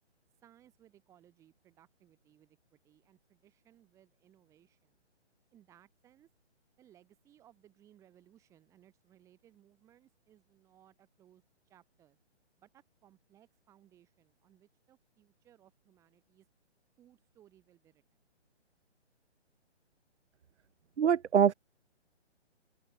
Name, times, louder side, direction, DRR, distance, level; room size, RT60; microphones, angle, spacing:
voice 1, 0.4-5.0 5.5-6.3 6.8-12.2 12.6-16.5 17.0-18.0, right 11 dB, 10° right, 5.0 m, -64 dB
voice 2, 21.0-21.5, right 8 dB, 75° right, 0.8 m, -24 dB
open air
hypercardioid pair, 175°, 35 cm